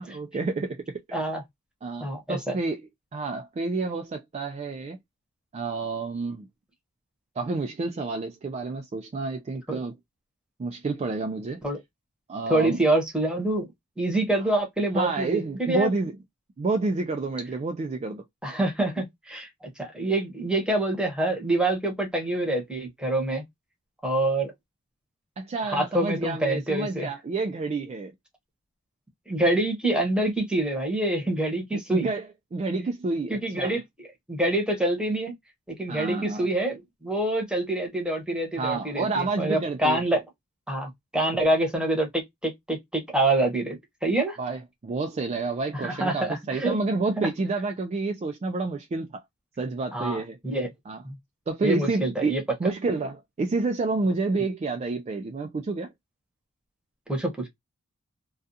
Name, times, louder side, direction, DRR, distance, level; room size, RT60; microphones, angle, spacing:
voice 1, 0.0-1.2 1.8-2.8 3.1-5.0 5.5-6.5 7.4-9.9 10.6-11.6 12.3-12.8 14.9-16.1 16.6-18.2 25.4-28.1 31.7-32.2 32.5-33.8 35.9-36.5 38.6-40.0 44.4-49.2 49.6-50.4 50.9-51.0 51.5-55.9, right 3 dB, 30° right, 0.3 m, -29 dB
voice 2, 1.1-1.4 2.0-2.6 9.7-9.8 11.6-11.8 12.5-13.7 14.0-15.9 18.4-19.5 19.8-23.4 24.0-24.5 25.7-27.1 29.3-32.1 33.3-35.3 35.7-40.2 40.7-44.4 45.7-46.8 47.2-47.3 49.9-50.2 50.4-50.7 51.0-51.2 51.6-52.4 57.1-57.5, right 1 dB, 5° right, 0.9 m, -26 dB
2.4 x 2.3 x 2.6 m
head